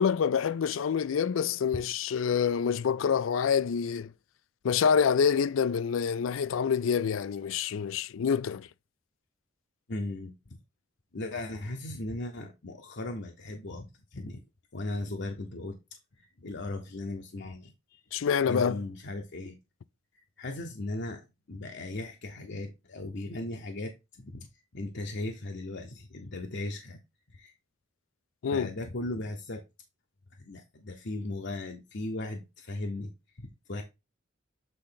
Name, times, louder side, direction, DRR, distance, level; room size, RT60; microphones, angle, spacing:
voice 1, 0.0-4.1 4.6-8.7 18.1-18.8 28.4-28.7, left 7 dB, 75° left, 0.4 m, -27 dB
voice 2, 9.9-10.6 11.1-14.4 14.7-18.0 18.5-19.6 20.1-21.2 21.5-24.5 24.7-27.0 27.3-27.5 28.5-29.6 30.4-33.1 33.4-33.8, left 2 dB, 60° left, 0.8 m, -37 dB
7.8 x 3.8 x 3.9 m
head